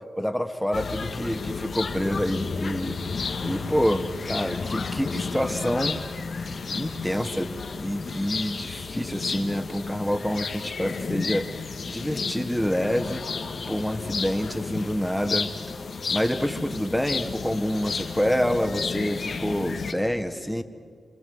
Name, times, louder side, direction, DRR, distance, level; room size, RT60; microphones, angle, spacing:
voice 1, 0.2-3.0 3.4-6.0 6.4-13.2 13.7-15.5 16.1-20.6, equal, 5° left, 7 dB, 1.7 m, -27 dB
sound 1, 0.7-19.9, left 4 dB, 70° left, 1.6 m, -32 dB
26.5 x 26.5 x 7.9 m, 2.1 s
cardioid pair, 50°, 0 cm